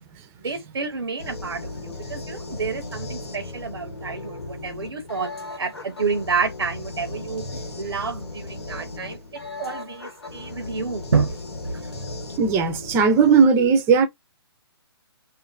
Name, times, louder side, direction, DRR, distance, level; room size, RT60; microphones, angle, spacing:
voice 1, 0.4-7.5 7.8-9.2 9.6-11.3, right 5 dB, 85° right, 0.6 m, -29 dB
sound 1, 1.2-13.5, left 2 dB, 80° left, 1.1 m, -36 dB
voice 2, 12.4-14.1, right 5 dB, 15° right, 0.5 m, -17 dB
2.5 x 2.4 x 2.2 m
hypercardioid pair, 140°, 13 cm